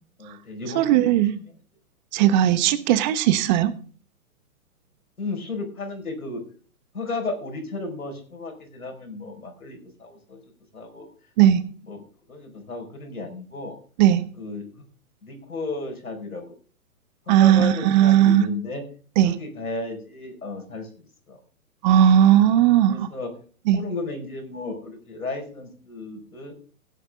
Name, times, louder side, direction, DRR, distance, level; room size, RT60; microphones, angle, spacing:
voice 1, 0.2-1.1 1.3-1.5 5.2-6.4 6.9-10.4 10.7-11.1 11.9-12.0 12.3-13.8 14.4-14.8 15.2-16.6 17.3-18.8 19.2-21.4 22.9-23.3 23.7-26.5, left 2 dB, 80° left, 4 dB, 5.0 m, -34 dB
voice 2, 0.7-1.4 2.1-3.7 11.4-11.7 14.0-14.3 17.3-18.5 19.2-19.3 21.8-23.1 23.7-23.8, right 11 dB, 30° right, 13 dB, 1.2 m, -17 dB
16.5 x 9.9 x 3.7 m, 0.41 s
figure-of-eight pair, 125°, 43 cm